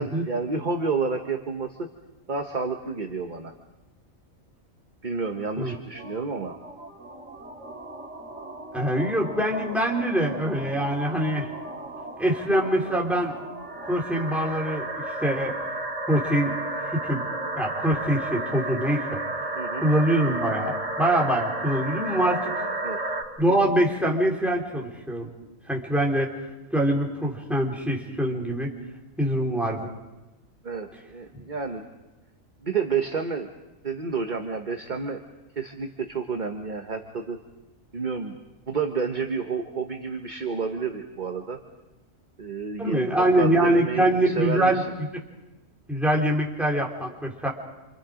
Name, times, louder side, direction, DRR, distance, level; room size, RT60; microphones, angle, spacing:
voice 1, 0.0-1.8 2.3-3.5 5.0-6.5 19.5-19.8 22.8-23.0 30.6-31.9 32.6-33.5 33.8-35.2 35.6-37.4 37.9-38.4 38.7-41.6 42.4-44.8, right 5 dB, 35° right, 4 dB, 1.3 m, -30 dB
sound 1, 5.6-23.2, right 2 dB, 60° right, 3.6 m, -33 dB
voice 2, 8.7-11.5 12.2-13.4 13.9-14.9 15.2-15.5 16.1-16.6 16.9-17.3 17.6-19.2 19.8-22.6 23.4-25.3 25.7-26.3 26.7-28.7 29.2-29.9 42.8-44.8 45.9-47.5, right 1 dB, ahead, -2 dB, 3.9 m, -24 dB
28.0 x 27.0 x 5.1 m, 1.0 s
omnidirectional pair, 1.4 m